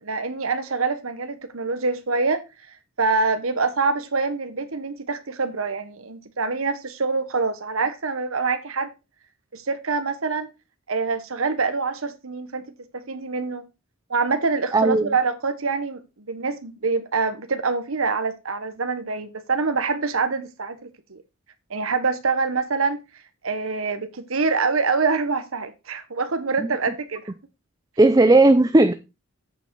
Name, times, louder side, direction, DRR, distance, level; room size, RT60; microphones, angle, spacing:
voice 1, 0.0-2.4 3.0-8.9 9.5-10.5 10.9-12.7 12.9-13.7 14.1-16.0 16.3-20.8 21.1-21.2 21.7-23.0 23.4-27.3, right 4 dB, 80° right, 1.2 m, -25 dB
voice 2, 14.7-15.2 28.0-28.9, right 2 dB, 15° right, 0.5 m, -15 dB
8.2 x 7.4 x 4.5 m
head